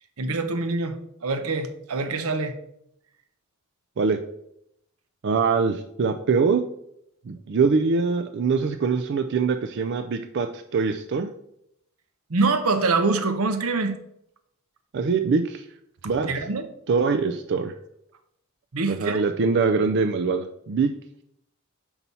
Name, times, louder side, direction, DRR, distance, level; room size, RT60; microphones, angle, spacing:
voice 1, 0.2-0.9 1.2-2.5 12.3-13.9 16.2-16.6 18.7-19.2, right 3 dB, 80° right, 8 dB, 0.8 m, -24 dB
voice 2, 5.2-6.6 7.3-11.3 14.9-15.6 16.0-16.3 16.9-17.7 18.9-20.9, right 5 dB, 55° right, 7 dB, 0.4 m, -23 dB
5.8 x 5.4 x 4.2 m, 0.75 s
head